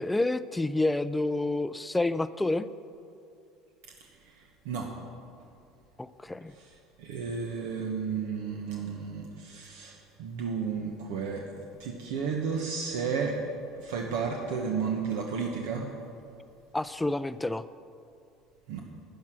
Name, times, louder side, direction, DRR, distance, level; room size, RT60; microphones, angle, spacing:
voice 1, 0.0-2.7 6.0-6.5 16.7-17.6, left 2 dB, 10° left, 14 dB, 0.4 m, -28 dB
voice 2, 4.0-4.9 6.5-13.4 13.8-15.9 18.7-18.8, right 5 dB, 85° right, 1 dB, 1.1 m, -33 dB
10.5 x 10.5 x 6.1 m, 2.5 s
supercardioid pair, 115°, 0 cm